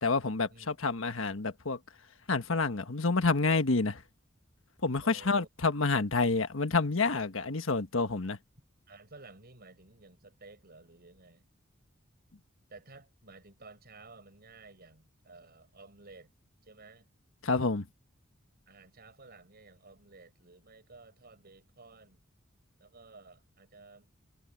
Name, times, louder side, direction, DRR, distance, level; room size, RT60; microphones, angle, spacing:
voice 1, 0.0-1.8 2.3-4.0 4.8-8.4 17.4-17.8, left 3 dB, 75° left, 1.4 m, -28 dB
voice 2, 5.0-5.5 8.9-11.5 12.7-16.3 16.6-17.1 18.7-22.2 22.8-24.1, right 3 dB, 50° right, 6.8 m, -54 dB
head